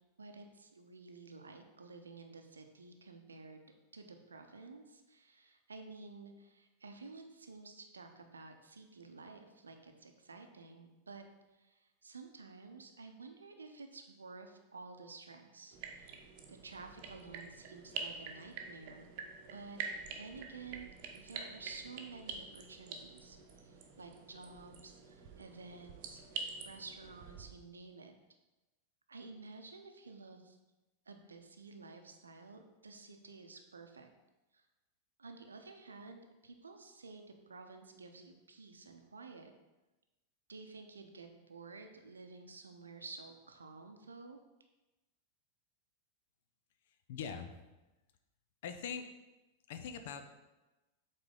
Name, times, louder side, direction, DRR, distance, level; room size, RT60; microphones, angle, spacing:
voice 1, 0.2-3.6 3.9-11.2 11.6-19.8 20.1-23.4 23.6-28.1 29.1-30.6 31.1-34.1 34.5-34.6 35.2-39.5 40.5-44.4, right 4 dB, 75° right, 5 dB, 0.7 m, -52 dB
sound 1, 15.7-27.5, right 5 dB, 45° right, 0.9 m, -46 dB
voice 2, 46.9-47.5 48.6-49.1 49.7-50.2, left 7 dB, 55° left, 8 dB, 0.6 m, -42 dB
7.7 x 4.2 x 3.8 m, 1.1 s
figure-of-eight pair, 90°, 0 cm